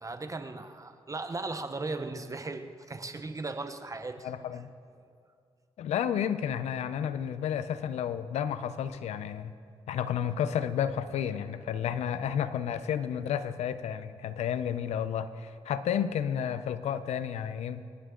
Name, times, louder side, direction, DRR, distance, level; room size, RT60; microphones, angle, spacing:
voice 1, 0.0-4.3, right 3 dB, 30° right, 9 dB, 0.9 m, -37 dB
voice 2, 4.2-4.7 5.8-9.5 9.9-17.8, left 9 dB, 90° left, 12 dB, 0.7 m, -31 dB
28.0 x 10.5 x 3.8 m, 2.3 s
cardioid pair, 65°, 11 cm